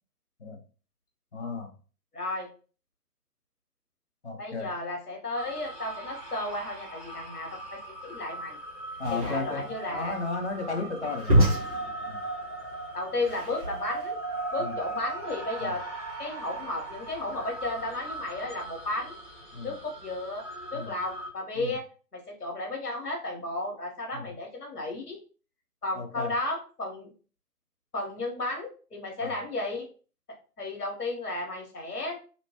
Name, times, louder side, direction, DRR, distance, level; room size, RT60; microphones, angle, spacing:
voice 1, 1.3-1.7 4.2-4.7 9.0-11.4 12.1-12.2 14.6-14.8 15.6-15.7 19.5-19.7 20.7-21.0 21.6-21.7 24.1-24.3 25.9-26.3 29.2-29.4, left 3 dB, 45° left, 4 dB, 0.8 m, -34 dB
voice 2, 2.1-2.5 4.4-8.6 9.1-10.2 12.9-14.2 14.5-15.8 16.2-19.2 19.6-20.4 20.7-21.8 22.1-25.2 25.8-27.1 27.9-29.8 30.6-32.2, left 2 dB, 70° left, 0 dB, 1.5 m, -33 dB
sound 1, 5.4-21.3, right 2 dB, 5° left, 1.3 m, -39 dB
sound 2, 8.9-14.1, right 1 dB, 25° right, 1.3 m, -28 dB
3.1 x 2.9 x 2.9 m, 0.38 s
figure-of-eight pair, 150°, 48 cm